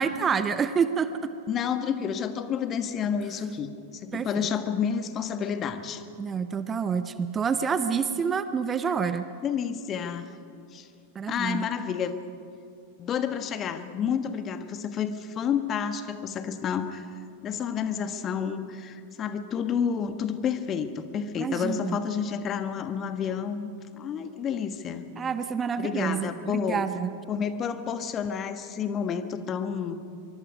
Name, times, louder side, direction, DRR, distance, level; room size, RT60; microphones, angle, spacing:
voice 1, 0.0-1.3 4.1-4.3 6.2-9.2 11.1-11.7 21.4-22.0 25.2-27.1, right 6 dB, 20° right, 11 dB, 0.8 m, -28 dB
voice 2, 1.5-3.7 4.0-6.0 9.4-10.3 10.7-10.9 11.3-12.2 13.0-17.1 17.4-25.1 25.8-26.9 27.3-30.0, left 7 dB, 30° left, 10 dB, 1.3 m, -30 dB
24.5 x 23.5 x 5.3 m, 2.5 s
figure-of-eight pair, 90°, 0 cm